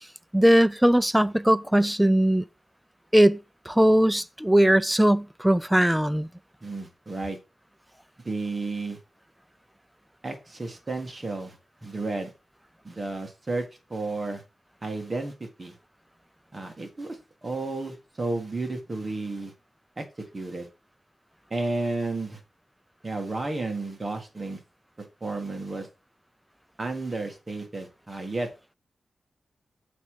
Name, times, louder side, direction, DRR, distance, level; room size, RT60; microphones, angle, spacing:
voice 1, 0.3-2.4 3.1-3.4 3.7-6.3, right 1 dB, 5° right, 0.4 m, -20 dB
voice 2, 6.6-7.4 8.2-9.0 10.2-12.3 12.8-14.4 14.8-15.7 16.5-19.5 20.0-20.7 21.5-22.4 23.0-24.6 25.0-25.9 26.8-28.5, right 2 dB, 25° right, 1.6 m, -32 dB
6.8 x 5.1 x 4.7 m
wide cardioid pair, 130°, 0 cm